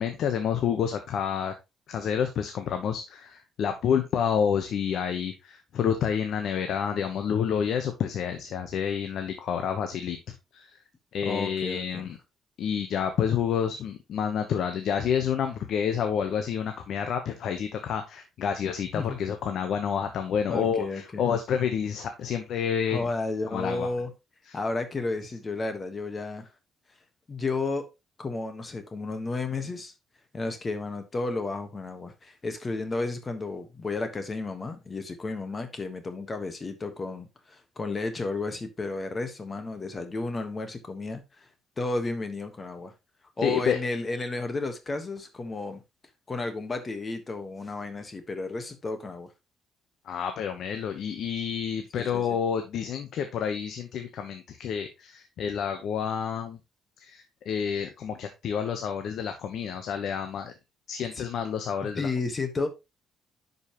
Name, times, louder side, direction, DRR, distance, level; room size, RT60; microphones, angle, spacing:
voice 1, 0.0-1.5 1.9-10.2 10.5-10.8 11.1-12.2 12.6-23.1 23.5-23.9 24.5-24.6 43.4-43.8 50.1-56.6 57.0-60.5 60.9-62.1, left 7 dB, 70° left, 1.0 m, -29 dB
voice 2, 11.2-12.1 18.9-19.2 20.5-21.2 22.9-24.1 24.5-26.5 27.3-27.9 28.2-29.9 30.3-41.5 41.8-42.9 43.4-45.8 46.3-49.3 51.9-52.4 61.1-61.2 61.9-62.7, left 3 dB, 30° left, 1.4 m, -32 dB
9.8 x 5.4 x 3.0 m
cardioid pair, 90°, 0 cm